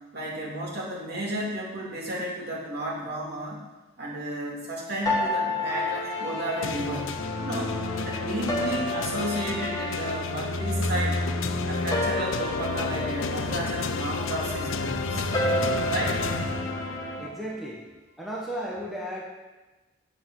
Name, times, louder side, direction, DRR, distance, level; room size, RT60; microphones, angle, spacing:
voice 1, 0.1-3.6 4.0-7.8 8.1-11.2 11.6-15.3 15.9-16.2, right 1 dB, 55° right, -4 dB, 2.7 m, -32 dB
sound 1, 5.1-17.3, left 1 dB, 20° left, 1.7 m, -31 dB
sound 2, 6.6-17.2, left 4 dB, 80° left, 0.6 m, -32 dB
voice 2, 17.2-17.8 18.2-19.2, equal, ahead, -4 dB, 1.3 m, -34 dB
8.6 x 7.1 x 6.4 m, 1.2 s
head